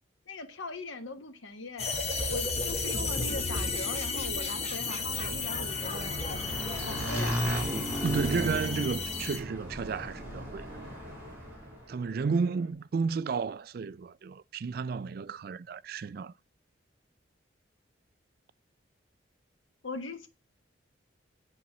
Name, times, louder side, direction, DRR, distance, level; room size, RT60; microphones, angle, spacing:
voice 1, 0.3-2.0 2.3-6.2 6.8-7.5 19.8-20.3, left 2 dB, 90° left, 1.3 m, -40 dB
sound 1, 1.8-9.4, left 3 dB, 35° left, 1.3 m, -33 dB
Motorcycle / Engine, 4.6-11.9, equal, 10° right, 2.6 m, -36 dB
sound 2, 4.8-12.7, right 2 dB, 70° right, 1.7 m, -52 dB
voice 2, 8.0-10.7 11.9-16.3, right 5 dB, 50° right, 0.3 m, -32 dB
8.7 x 4.2 x 5.9 m
head